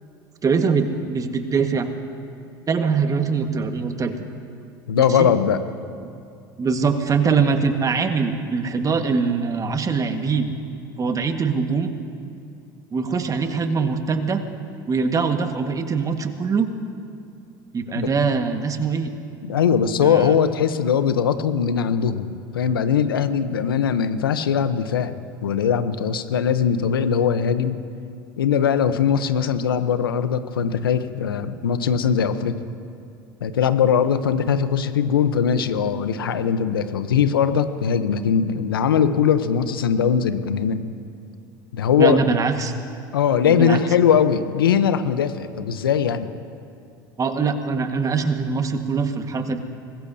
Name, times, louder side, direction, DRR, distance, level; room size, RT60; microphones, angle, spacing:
voice 1, 0.4-1.9 2.7-4.2 4.9-5.3 6.6-10.5 11.0-11.9 12.9-14.4 14.9-16.7 17.7-19.1 20.0-20.3 42.0-42.7 43.5-43.8 47.2-49.6, right 5 dB, 30° right, 6 dB, 1.6 m, -22 dB
voice 2, 4.9-5.6 13.8-13.9 17.9-18.1 19.4-27.8 28.4-32.6 33.4-40.8 41.7-42.2 43.1-46.3, left 7 dB, 85° left, 11 dB, 0.9 m, -20 dB
24.0 x 20.5 x 2.8 m, 2.5 s
hypercardioid pair, 75°, 12 cm